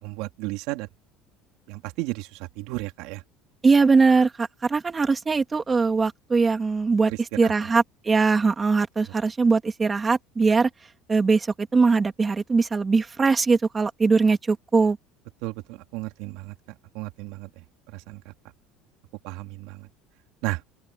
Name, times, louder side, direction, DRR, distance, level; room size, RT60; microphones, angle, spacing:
voice 1, 0.0-0.9 1.7-3.2 7.1-7.7 15.4-18.3 19.2-19.9 20.4-20.6, right 20 dB, 70° right, 3.3 m, -34 dB
voice 2, 3.6-7.1 7.4-10.7 11.1-11.5 11.7-15.0, right 4 dB, 15° right, 2.7 m, -21 dB
open air
cardioid pair, 165°, 0 cm